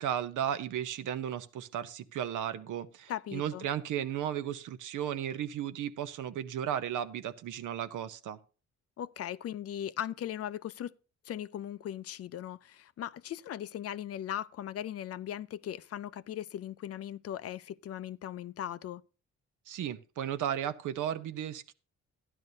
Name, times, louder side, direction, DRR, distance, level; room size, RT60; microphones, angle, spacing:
voice 1, 0.0-8.4 19.7-21.7, right 10 dB, 75° right, 0.8 m, -35 dB
voice 2, 3.1-3.7 9.0-10.9 11.2-19.0, left 11 dB, 50° left, 0.4 m, -38 dB
12.5 x 10.5 x 2.7 m
cardioid pair, 100°, 31 cm